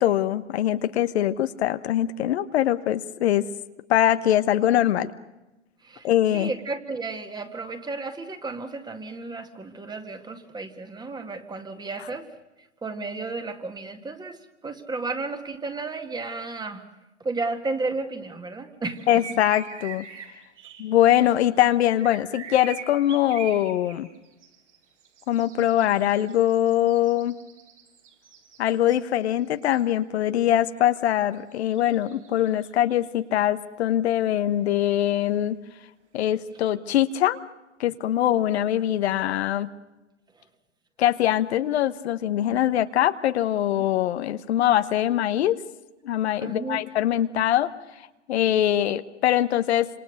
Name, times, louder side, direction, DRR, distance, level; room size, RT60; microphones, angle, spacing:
voice 1, 0.0-3.4 3.9-5.1 6.0-6.5 19.1-20.0 20.8-24.1 25.3-27.4 28.6-35.6 36.1-37.4 37.8-39.7 41.0-45.6 46.0-47.7 48.3-49.9, left 12 dB, 60° left, 10 dB, 1.3 m, -22 dB
voice 2, 5.8-12.3 12.8-16.8 17.2-19.1 46.4-46.8, right 3 dB, 10° right, 7 dB, 2.0 m, -33 dB
sound 1, 19.0-21.4 22.0-30.2 30.5-31.1 31.3-33.1 34.8-35.0 36.3-36.7, right 8 dB, 75° right, 7.2 m, -44 dB
28.5 x 26.5 x 6.6 m, 1.0 s
hypercardioid pair, 115°, 36 cm